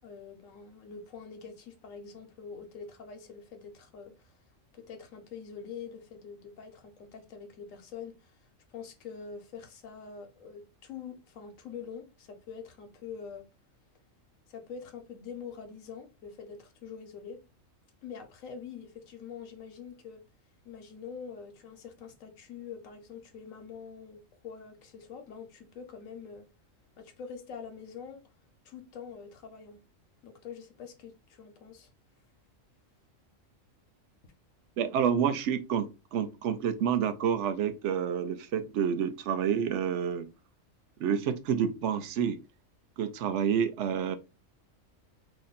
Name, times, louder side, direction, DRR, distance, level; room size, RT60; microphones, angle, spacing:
voice 1, 0.0-4.3 4.7-8.4 8.7-13.5 14.5-17.4 18.0-20.2 20.6-24.2 24.4-26.4 27.0-28.3 28.6-29.8 30.2-31.9, left 6 dB, 80° left, 1.2 m, -45 dB
voice 2, 34.8-40.3 41.0-42.4 43.0-44.2, right 8 dB, 70° right, 0.9 m, -29 dB
3.0 x 2.6 x 3.9 m
omnidirectional pair, 1.4 m